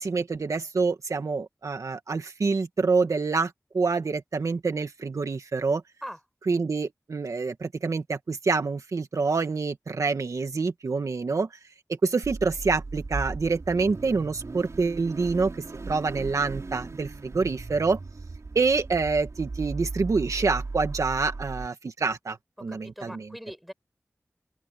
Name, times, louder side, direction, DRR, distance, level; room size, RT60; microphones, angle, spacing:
voice 1, 0.0-5.8 6.5-11.5 12.0-15.5 15.9-18.0 18.6-23.3, right 4 dB, 85° right, 2.0 m, -26 dB
Car / Idling / Accelerating revving vroom, 12.2-21.7, right 3 dB, 70° right, 4.4 m, -37 dB
voice 2, 22.6-23.7, equal, ahead, 7.1 m, -41 dB
open air
wide cardioid pair, 50°, 5 cm